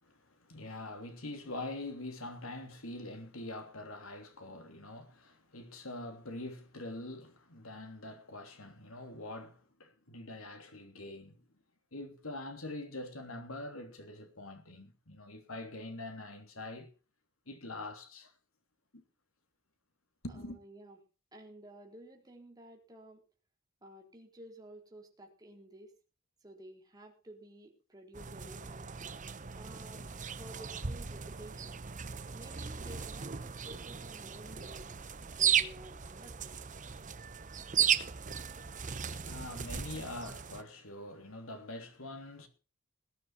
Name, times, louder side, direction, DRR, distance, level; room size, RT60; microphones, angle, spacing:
voice 1, 0.0-11.4 11.9-16.9 17.5-18.3 18.9-19.0 20.2-20.6 38.3-42.5, left 2 dB, 75° left, 3.2 m, -44 dB
voice 2, 20.3-21.0 21.3-23.2 23.8-25.9 26.4-28.9 29.5-30.0 30.3-31.8 32.3-34.9 35.4-36.8, right 1 dB, 20° right, 4.0 m, -53 dB
sound 1, 28.1-40.6, right 8 dB, 35° right, 0.9 m, -36 dB
20.5 x 9.8 x 4.5 m
head